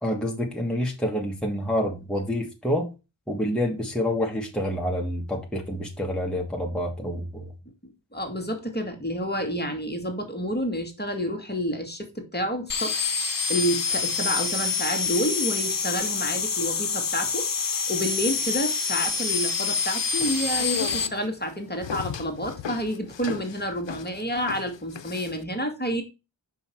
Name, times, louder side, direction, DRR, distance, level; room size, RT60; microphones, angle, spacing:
voice 1, 0.0-2.9 3.3-7.5, equal, ahead, 1.7 m, -28 dB
voice 2, 8.1-26.0, equal, 20° left, 2.0 m, -29 dB
sound 1, 12.7-21.1, left 5 dB, 50° left, 1.1 m, -27 dB
sound 2, 20.0-25.4, left 9 dB, 80° left, 0.7 m, -37 dB
5.6 x 5.6 x 4.5 m
wide cardioid pair, 70°, 44 cm